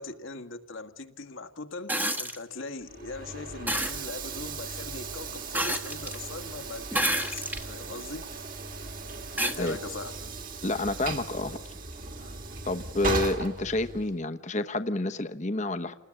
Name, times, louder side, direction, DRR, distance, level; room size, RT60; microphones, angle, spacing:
voice 1, 0.0-8.4 9.3-10.1, left 3 dB, 70° left, 7 dB, 1.7 m, -40 dB
sound 1, 1.9-2.4 3.7-4.0 5.5-6.2 6.9-7.7 8.3-8.4 9.4-9.6 11.0-11.1, right 1 dB, 10° right, 1.3 m, -28 dB
Train / Sliding door, 2.8-14.2, right 3 dB, 40° right, 2.3 m, -37 dB
voice 2, 10.6-11.6 12.2-12.3 12.7-15.9, left 2 dB, 35° left, 8 dB, 1.0 m, -29 dB
29.5 x 20.0 x 8.7 m, 0.85 s
head